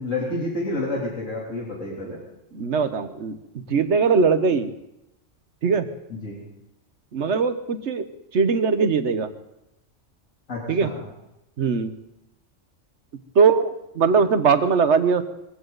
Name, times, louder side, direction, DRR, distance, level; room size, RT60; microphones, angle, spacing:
voice 1, 0.0-2.2 6.1-6.4 10.5-11.0, left 2 dB, 80° left, -4 dB, 3.7 m, -29 dB
voice 2, 2.5-3.4 3.7-4.7 5.6-5.9 7.1-8.1 8.3-9.3 10.7-10.9 11.6-11.9 13.3-15.2, right 5 dB, 60° right, 10 dB, 1.3 m, -20 dB
22.0 x 16.0 x 4.0 m, 0.91 s
omnidirectional pair, 1.3 m